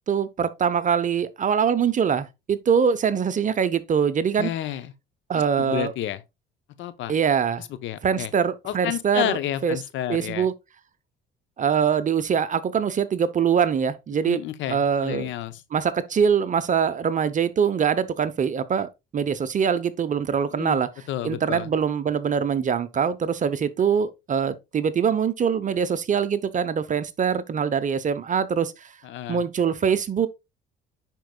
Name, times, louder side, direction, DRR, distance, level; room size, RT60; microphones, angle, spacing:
voice 1, 0.1-4.5 5.3-5.9 7.1-7.6 8.0-9.4 9.6-9.8 10.1-10.5 11.6-14.4 14.7-15.3 15.7-20.9 21.2-28.9 29.3-30.3, right 7 dB, 40° right, 0.7 m, -23 dB
voice 2, 4.4-4.9 5.3-6.2 6.8-7.1 7.6-8.3 8.6-10.5 14.2-15.6 20.6-20.8 21.1-21.7 29.0-29.4, left 12 dB, 65° left, 0.7 m, -30 dB
10.0 x 4.5 x 2.2 m
supercardioid pair, 75°, 21 cm